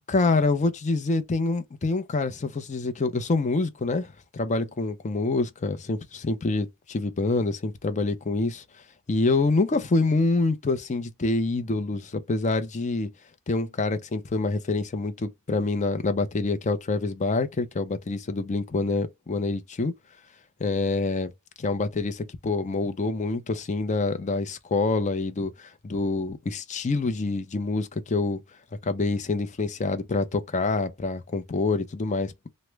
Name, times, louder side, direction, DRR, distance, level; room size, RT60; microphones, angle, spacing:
voice 1, 0.0-8.6 9.1-13.1 13.5-19.9 20.6-21.3 21.6-28.4 28.8-32.5, left 3 dB, 30° left, 0.5 m, -26 dB
3.1 x 2.1 x 3.3 m
head